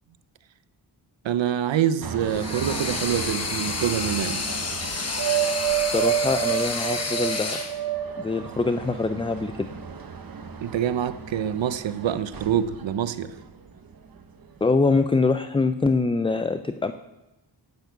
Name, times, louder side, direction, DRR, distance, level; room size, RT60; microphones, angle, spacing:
voice 1, 1.2-4.4 10.6-13.3, right 9 dB, 85° right, 13 dB, 0.8 m, -26 dB
sound 1, 2.0-14.2 14.6-15.0, right 10 dB, 50° right, 1.1 m, -31 dB
sound 2, 2.2-7.8, left 4 dB, 35° left, 1.1 m, -30 dB
voice 2, 5.9-7.6 8.2-9.7 14.6-16.9, left 3 dB, 15° left, 9 dB, 0.3 m, -24 dB
10.5 x 8.2 x 8.1 m, 1.0 s
wide cardioid pair, 155°, 44 cm